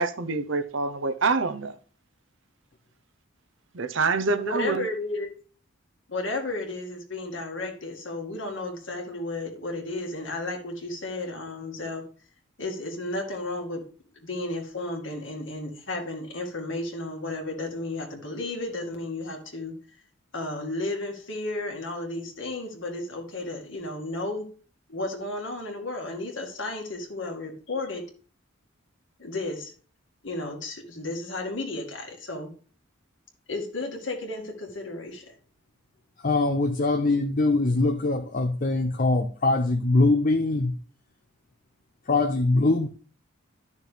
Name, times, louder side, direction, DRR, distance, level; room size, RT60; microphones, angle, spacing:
voice 1, 0.0-1.8 3.7-4.8, right 4 dB, 60° right, 0.8 m, -26 dB
voice 2, 4.5-5.3 6.1-12.1 12.6-13.8 14.2-19.8 20.3-24.5 24.9-28.0 29.2-29.7 30.2-32.5 33.5-35.4, left 2 dB, 60° left, 2.1 m, -33 dB
voice 3, 36.2-40.8 42.1-42.9, left 2 dB, 40° left, 0.6 m, -22 dB
12.0 x 6.5 x 3.4 m
head